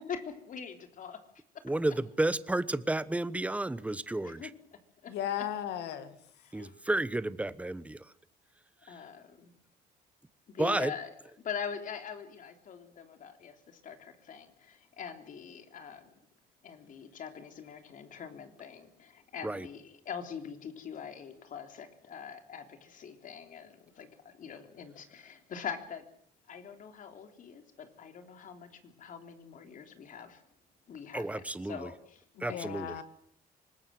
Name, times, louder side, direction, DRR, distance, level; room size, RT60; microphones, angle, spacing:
voice 1, 0.1-1.2 4.2-4.5 5.0-5.1 6.4-6.7 8.9-9.5 10.5-11.1 11.4-16.1 16.6-26.0 26.5-30.4 30.9-32.8, left 7 dB, 50° left, 7 dB, 3.5 m, -43 dB
voice 2, 1.6-4.5 6.5-8.0 10.6-10.9 19.4-19.7 31.1-31.9 32.4-33.0, right 2 dB, 10° right, 16 dB, 1.1 m, -31 dB
voice 3, 5.1-6.2 32.4-33.0, left 10 dB, 85° left, 11 dB, 2.3 m, -36 dB
25.0 x 20.0 x 7.7 m, 0.65 s
cardioid pair, 110°, 17 cm